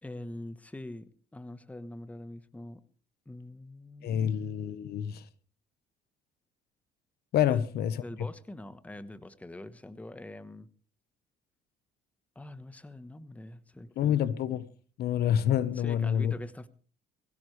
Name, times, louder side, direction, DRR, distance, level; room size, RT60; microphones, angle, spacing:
voice 1, 0.0-2.8 3.3-4.4 7.5-7.6 8.0-10.7 12.3-14.3 15.7-16.7, left 1 dB, 10° left, 1.2 m, -44 dB
voice 2, 4.0-5.2 7.3-8.0 14.0-14.7 15.0-16.3, left 9 dB, 70° left, 1.2 m, -27 dB
22.0 x 16.5 x 3.3 m
cardioid pair, 110°, 17 cm